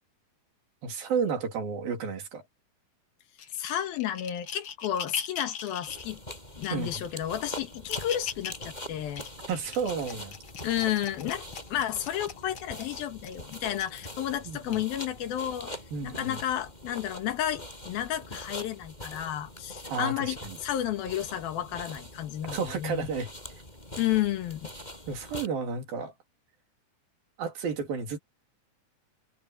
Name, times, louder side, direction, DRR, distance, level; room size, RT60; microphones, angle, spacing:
voice 1, 0.8-2.4 6.7-6.9 9.5-10.4 14.5-14.8 15.9-16.4 19.9-20.6 22.4-23.3 25.1-26.1 27.4-28.2, right 5 dB, 75° right, 5.1 m, -32 dB
sound 1, 3.4-6.1 6.6-7.1 7.6-8.6 9.1-14.2 14.7-15.0 15.8-15.9, left 7 dB, 50° left, 1.7 m, -40 dB
voice 2, 3.5-6.2 6.6-9.3 10.6-15.7 16.0-23.1 24.0-24.7, left 11 dB, 85° left, 3.4 m, -32 dB
sound 2, 5.9-25.5, left 1 dB, 10° left, 7.4 m, -44 dB
omnidirectional pair, 4.1 m